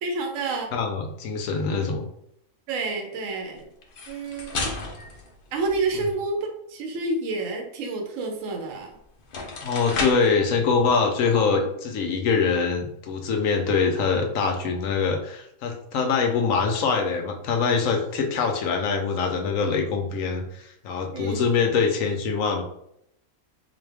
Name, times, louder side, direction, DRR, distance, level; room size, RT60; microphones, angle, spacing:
voice 1, 0.0-0.7 2.7-3.7 4.1-4.7 5.5-9.0 21.1-21.4, right 3 dB, 65° right, 2 dB, 1.1 m, -29 dB
voice 2, 0.7-2.1 9.6-22.6, left 5 dB, 70° left, 3 dB, 1.0 m, -24 dB
sound 1, 3.8-6.2 8.7-8.8 9.2-10.4, left 3 dB, 55° left, 0.7 m, -33 dB
4.0 x 2.4 x 3.4 m, 0.75 s
omnidirectional pair, 1.5 m